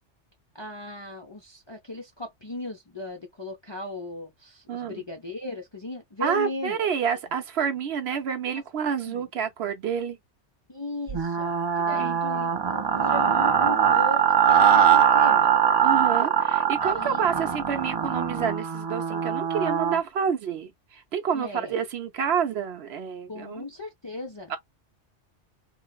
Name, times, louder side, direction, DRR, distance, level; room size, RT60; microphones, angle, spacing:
voice 1, 0.5-6.8 9.0-9.2 10.7-15.5 16.8-17.2 21.3-21.7 23.3-24.6, left 2 dB, 35° left, 0.4 m, -37 dB
voice 2, 4.7-5.0 6.2-10.2 11.9-12.5 15.8-23.6 24.5-24.6, right 7 dB, 65° right, 0.9 m, -29 dB
sound 1, 11.1-20.0, right 8 dB, 45° right, 0.3 m, -22 dB
3.7 x 2.0 x 2.2 m
omnidirectional pair, 1.2 m